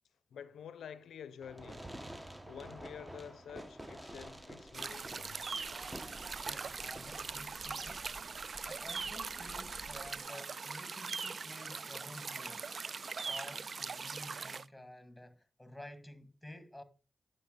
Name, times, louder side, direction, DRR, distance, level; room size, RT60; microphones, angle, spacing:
voice 1, 0.3-1.9 2.2-5.4, left 8 dB, 85° left, 0.5 m, -49 dB
Fireworks, 1.4-7.4, right 1 dB, 15° right, 1.2 m, -49 dB
sound 1, 4.0-10.2, right 2 dB, 40° right, 1.3 m, -56 dB
sound 2, 4.7-14.6, right 5 dB, 60° right, 0.4 m, -41 dB
voice 2, 6.4-8.1 8.6-12.7 13.2-16.8, left 1 dB, 10° left, 2.0 m, -52 dB
10.5 x 5.3 x 4.0 m
supercardioid pair, 45°, 0 cm